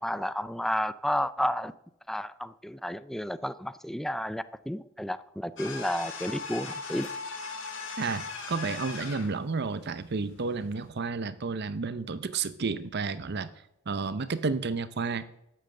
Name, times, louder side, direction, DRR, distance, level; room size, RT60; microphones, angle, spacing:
voice 1, 0.0-1.7 2.1-7.1, equal, ahead, 0.3 m, -31 dB
sound 1, 5.6-9.4, left 4 dB, 65° left, 2.3 m, -38 dB
voice 2, 8.0-13.5 13.9-15.4, right 4 dB, 55° right, 0.6 m, -31 dB
12.0 x 7.6 x 7.6 m
head